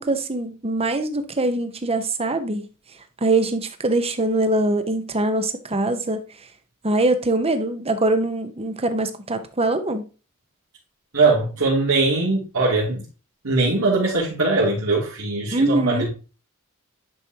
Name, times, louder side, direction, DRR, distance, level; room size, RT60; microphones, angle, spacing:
voice 1, 0.0-2.7 3.2-6.2 6.8-10.1 15.5-16.1, right 2 dB, 25° right, 1.0 m, -23 dB
voice 2, 11.1-13.0 13.4-16.1, right 3 dB, 85° right, 2.9 m, -21 dB
10.5 x 5.1 x 2.9 m
head